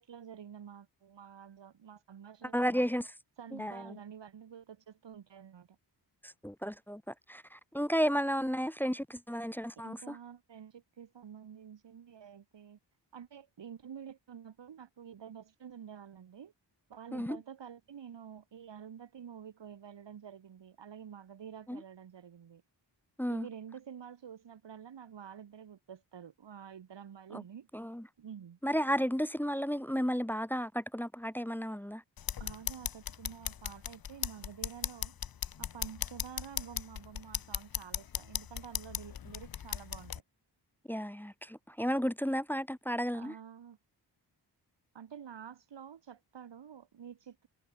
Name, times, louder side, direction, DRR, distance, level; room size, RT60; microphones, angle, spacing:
voice 1, 0.0-3.0 3.4-5.8 9.8-12.8 13.1-16.5 16.9-22.6 23.3-27.7 28.2-28.6 32.4-35.1 35.6-40.2 43.1-43.8 44.9-47.5, right 8 dB, 80° right, 3.4 m, -49 dB
voice 2, 2.5-3.1 3.5-4.0 6.2-10.2 17.1-17.4 21.7-21.8 23.2-23.5 27.3-27.4 27.7-28.1 28.6-32.0 40.9-43.3, equal, 5° left, 0.5 m, -33 dB
sound 1, 32.2-40.2, left 8 dB, 55° left, 1.0 m, -38 dB
cardioid pair, 80°, 43 cm